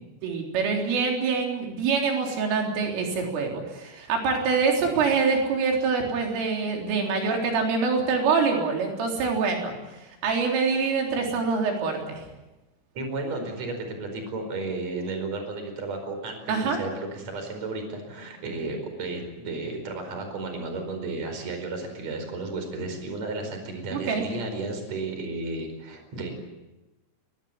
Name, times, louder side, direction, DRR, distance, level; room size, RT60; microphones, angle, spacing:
voice 1, 0.2-9.7 10.2-12.2 16.5-16.8 23.9-24.2, right 5 dB, 85° right, 1 dB, 6.2 m, -25 dB
voice 2, 13.0-26.3, right 3 dB, 35° right, 5 dB, 5.6 m, -33 dB
22.0 x 21.5 x 9.6 m, 1.0 s
omnidirectional pair, 5.6 m